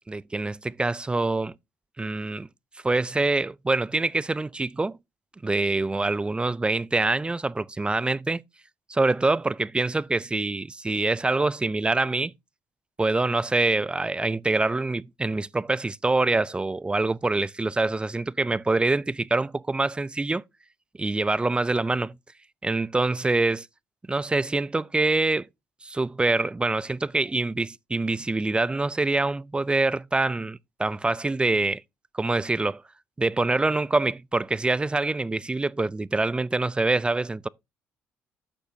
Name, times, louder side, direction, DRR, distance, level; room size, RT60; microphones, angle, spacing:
voice 1, 0.1-1.6 2.0-2.5 2.8-5.0 5.4-8.4 8.9-12.3 13.0-20.4 21.0-22.2 22.6-23.7 24.1-25.5 25.8-31.8 32.1-32.8 33.2-37.5, right 2 dB, 15° right, 0.4 m, -25 dB
11.5 x 6.7 x 2.7 m
supercardioid pair, 60°, 6 cm